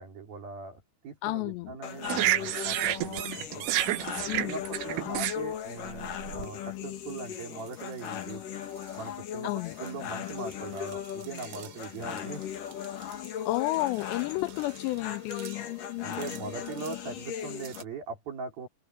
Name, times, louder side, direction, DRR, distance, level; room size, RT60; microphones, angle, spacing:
voice 1, 0.0-3.7 4.4-8.4 9.0-9.5 9.8-12.5 16.0-18.7, right 4 dB, 50° right, 6.0 m, -40 dB
voice 2, 1.2-1.8 4.3-4.6 5.1-5.3 9.4-9.8 13.5-15.7, left 19 dB, 85° left, 2.5 m, -31 dB
sound 1, 1.8-17.8, left 9 dB, 55° left, 2.9 m, -38 dB
sound 2, 2.0-6.5 7.2-7.3 7.7-8.1 8.8-9.0 9.9-10.0 10.3-13.3 13.6-15.0 15.3-15.6 16.1-17.0 17.6-17.8, right 14 dB, 85° right, 3.7 m, -32 dB
open air
omnidirectional pair, 5.4 m